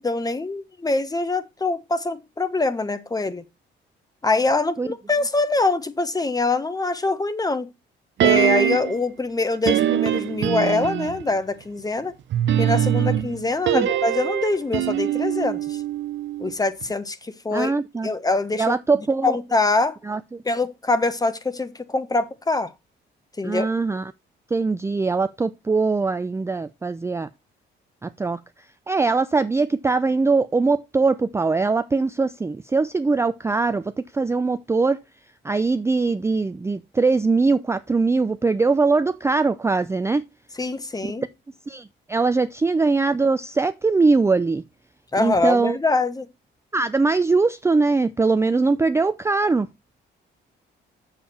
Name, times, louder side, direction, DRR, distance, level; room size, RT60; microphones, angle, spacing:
voice 1, 0.0-3.4 4.2-7.7 8.2-12.1 12.6-15.8 16.4-17.7 18.0-18.8 19.2-20.0 20.4-22.7 23.4-23.7 40.6-41.3 45.1-46.3, left 3 dB, 20° left, 1.1 m, -24 dB
sound 1, 8.2-9.0 9.6-11.3 12.3-16.5 16.8-16.9, right 11 dB, 70° right, 0.7 m, -23 dB
voice 2, 17.5-18.1 18.6-19.4 20.0-20.4 23.4-24.1 24.5-27.3 28.0-28.4 28.9-35.0 35.4-40.2 41.7-44.6 45.2-45.8 46.7-49.7, right 3 dB, 15° right, 0.4 m, -21 dB
7.3 x 6.7 x 4.2 m
cardioid pair, 90°, 20 cm